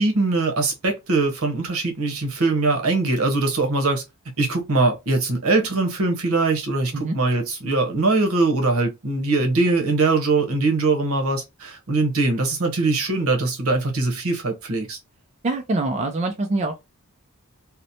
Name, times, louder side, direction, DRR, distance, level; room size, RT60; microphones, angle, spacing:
voice 1, 0.0-4.0 4.4-15.0, right 3 dB, 75° right, 0.9 m, -22 dB
voice 2, 15.4-16.8, right 2 dB, 30° right, 0.3 m, -24 dB
2.8 x 2.1 x 2.6 m
head